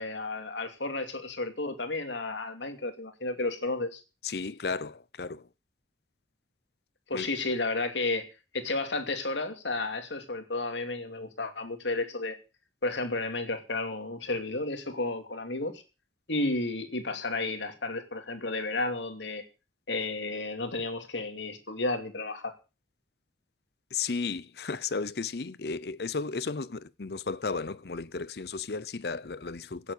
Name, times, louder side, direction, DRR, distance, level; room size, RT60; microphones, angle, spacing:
voice 1, 0.0-4.0 7.1-8.3 8.5-12.4 12.8-15.8 16.3-19.4 19.9-22.6, left 2 dB, 85° left, 2.8 m, -32 dB
voice 2, 4.2-5.4 7.1-7.3 23.9-29.9, left 4 dB, 60° left, 0.7 m, -34 dB
17.0 x 8.4 x 6.6 m
head